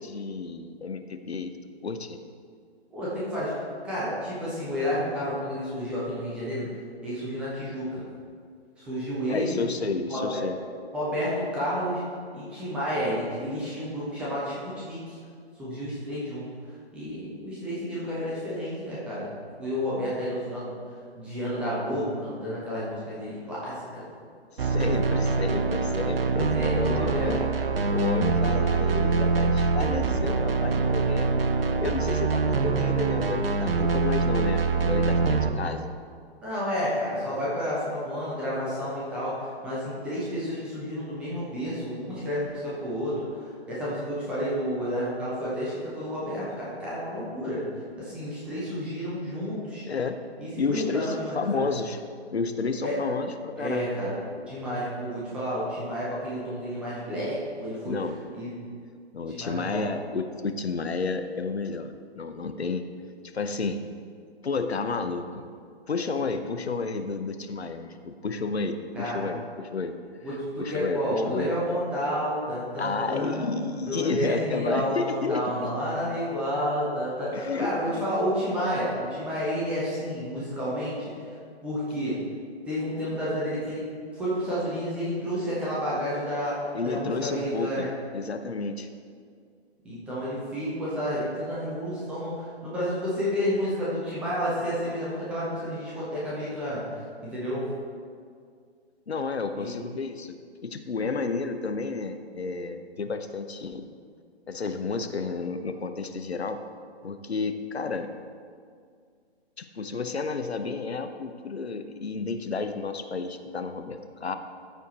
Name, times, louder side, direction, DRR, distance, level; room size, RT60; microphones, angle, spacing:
voice 1, 0.0-1.5 1.8-2.2 9.3-10.6 24.5-27.5 27.9-31.4 31.8-35.9 49.9-50.2 50.6-52.0 52.3-53.8 57.8-58.2 59.1-62.8 63.3-63.8 64.4-65.5 65.9-69.9 70.6-71.6 72.8-75.7 77.3-78.1 86.7-88.9 99.1-100.4 100.6-103.8 104.5-106.6 107.0-108.1 109.6-114.4, left 4 dB, 70° left, 8 dB, 0.7 m, -31 dB
voice 2, 2.9-3.5 3.8-6.7 7.0-8.0 8.8-9.6 10.1-10.4 10.9-12.0 12.3-15.2 15.6-16.5 16.9-19.3 19.6-20.7 21.1-24.0 24.7-25.4 26.5-27.3 36.4-47.6 48.0-49.8 50.4-51.7 52.8-52.9 53.6-54.2 54.5-58.0 58.3-58.5 59.3-59.9 68.9-69.3 70.2-73.5 73.9-81.4 81.6-82.2 82.7-83.8 84.1-87.9 89.8-97.7 99.5-99.7, equal, 5° right, -8 dB, 0.5 m, -30 dB
sound 1, 24.6-35.5, right 4 dB, 60° right, 0.7 m, -24 dB
13.5 x 4.5 x 4.0 m, 2.2 s
figure-of-eight pair, 130°, 33 cm